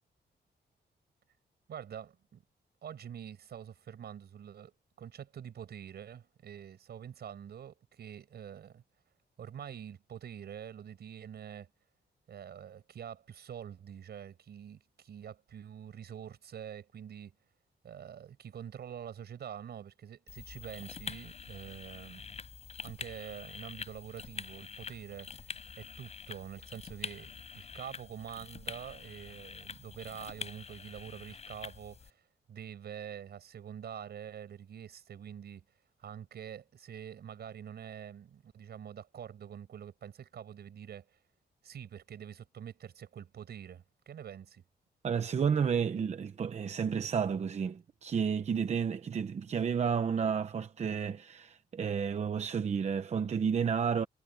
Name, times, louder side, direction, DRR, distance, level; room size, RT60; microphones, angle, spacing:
voice 1, 1.7-2.4 2.8-4.7 5.0-8.8 9.4-11.7 12.3-17.3 17.8-22.4 22.8-25.5 25.8-32.2 32.5-35.6 36.0-41.2 41.6-44.6, right 9 dB, 70° right, 5.8 m, -46 dB
sound 1, 20.3-32.1, left 5 dB, 40° left, 4.8 m, -46 dB
voice 2, 45.0-54.1, right 6 dB, 40° right, 0.8 m, -31 dB
wide cardioid pair, 165°, 18 cm